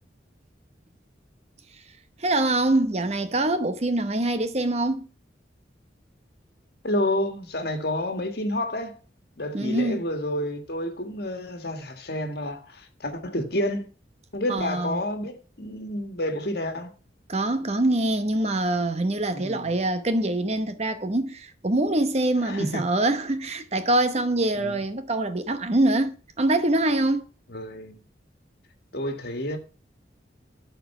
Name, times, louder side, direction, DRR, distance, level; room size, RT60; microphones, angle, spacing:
voice 1, 2.2-5.1 9.5-10.0 14.5-15.0 17.3-27.2, right 2 dB, 35° right, 0.9 m, -24 dB
voice 2, 6.8-9.0 9.4-13.9 14.3-16.9 19.3-19.7 22.4-22.8 24.6-24.8 27.5-28.0 28.9-29.6, left 1 dB, 60° left, 1.7 m, -29 dB
13.0 x 4.6 x 5.5 m
head